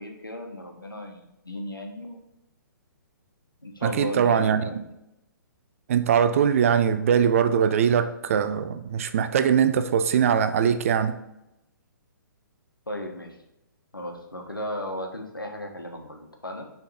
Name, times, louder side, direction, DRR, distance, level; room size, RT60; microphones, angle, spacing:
voice 1, 0.0-2.2 3.6-4.9 12.9-13.4 13.9-16.6, left 1 dB, 85° left, 1.3 m, -35 dB
voice 2, 3.8-4.6 5.9-11.1, right 8 dB, 40° right, 0.4 m, -21 dB
6.5 x 3.5 x 4.2 m
figure-of-eight pair, 130°, 11 cm